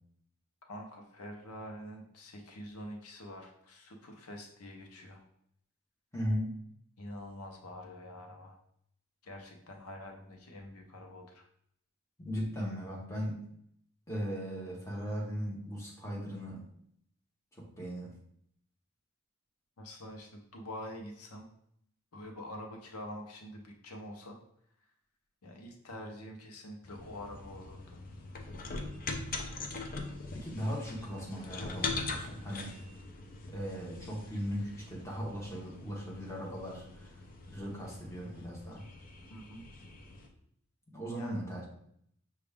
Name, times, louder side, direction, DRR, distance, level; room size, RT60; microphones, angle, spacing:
voice 1, 0.7-5.2 7.0-8.6 9.2-11.5 19.8-21.5 22.1-24.4 25.4-28.0 39.3-39.7 41.2-41.4, left 1 dB, 90° left, 3 dB, 0.8 m, -46 dB
voice 2, 6.1-6.5 12.2-13.4 14.1-16.6 17.6-18.1 30.3-32.7 33.5-37.1 37.5-38.8 40.9-41.7, equal, 15° left, -3 dB, 1.1 m, -38 dB
sound 1, 26.8-40.3, left 3 dB, 40° left, 0.5 m, -42 dB
6.0 x 2.4 x 3.4 m, 0.69 s
head